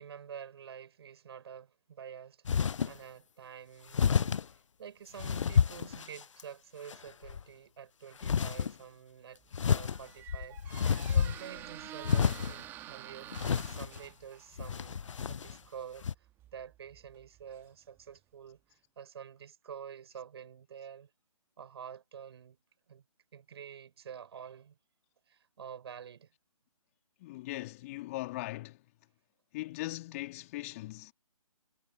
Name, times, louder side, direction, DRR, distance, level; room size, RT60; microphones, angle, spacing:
voice 1, 0.0-15.0 15.3-16.3 16.5-21.1 21.6-22.6 22.9-23.0 23.3-24.8 25.3-26.3, right 8 dB, 45° right, 6.3 m, -48 dB
sound 1, 2.4-3.0 3.9-4.5 5.2-6.4 6.9-7.4 8.2-8.7 9.5-11.6 12.0-12.6 13.3-14.0 14.6-15.6 16.0-16.1, left 7 dB, 55° left, 0.4 m, -29 dB
Squeak, 9.4-18.2, right 14 dB, 10° right, 1.2 m, -50 dB
voice 2, 27.2-28.8 29.5-31.1, left 19 dB, 25° left, 2.6 m, -39 dB
figure-of-eight pair, 145°, 19 cm